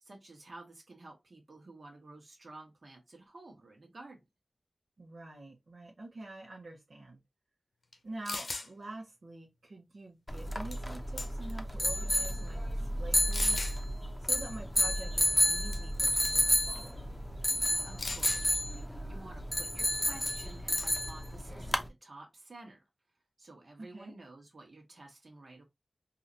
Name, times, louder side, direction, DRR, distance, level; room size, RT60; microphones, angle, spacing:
voice 1, 0.0-4.2 17.7-22.8 23.4-25.6, right 2 dB, 65° right, 1.5 m, -52 dB
voice 2, 5.0-7.2 8.0-13.6 14.2-17.1 23.8-24.1, right 2 dB, 85° right, 1.2 m, -46 dB
sound 1, 7.9-8.0 8.2-8.7 10.7-10.9 11.2-11.6 12.3-12.4 13.3-13.8 15.7-16.0 16.2-16.5 18.0-18.4 20.3-20.5 20.8-21.1, left 3 dB, 80° left, 0.7 m, -38 dB
sound 2, 10.3-21.9, left 1 dB, 15° left, 0.7 m, -31 dB
4.0 x 2.8 x 2.7 m
wide cardioid pair, 65°, 0 cm